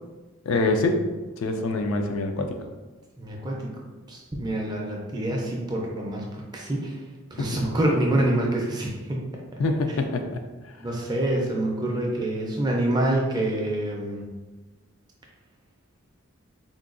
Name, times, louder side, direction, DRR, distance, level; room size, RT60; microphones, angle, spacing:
voice 1, 0.5-1.0 1.4-2.6 7.4-7.5 9.6-10.4, left 2 dB, 70° left, 5 dB, 0.3 m, -25 dB
voice 2, 3.2-3.8 4.1-7.0 7.3-9.4 10.8-14.3, right 1 dB, 20° right, -1 dB, 0.4 m, -26 dB
3.7 x 2.2 x 2.4 m, 1.2 s
head